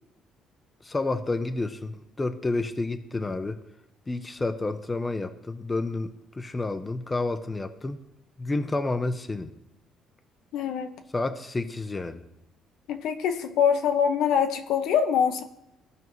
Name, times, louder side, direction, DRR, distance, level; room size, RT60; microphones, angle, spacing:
voice 1, 0.8-3.6 4.1-6.1 6.3-8.0 8.4-9.5 11.1-12.2, left 2 dB, 20° left, 9 dB, 0.6 m, -30 dB
voice 2, 10.5-10.9 12.9-15.4, left 7 dB, 75° left, 7 dB, 0.8 m, -24 dB
15.5 x 5.4 x 3.1 m, 0.86 s
cardioid pair, 105°, 0 cm